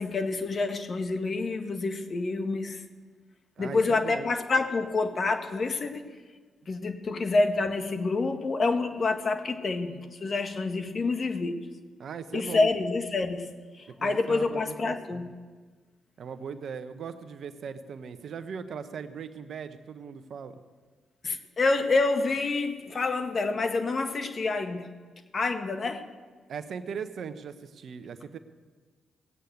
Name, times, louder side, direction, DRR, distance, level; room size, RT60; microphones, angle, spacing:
voice 1, 0.0-2.8 3.6-6.0 6.7-11.7 12.3-15.3 21.2-24.9 25.3-26.0, left 3 dB, 50° left, 7 dB, 1.7 m, -28 dB
voice 2, 3.6-4.3 12.0-12.7 14.0-15.2 16.2-20.5 26.5-28.4, right 6 dB, 65° right, 10 dB, 1.0 m, -39 dB
18.0 x 8.5 x 8.0 m, 1.4 s
supercardioid pair, 50°, 0 cm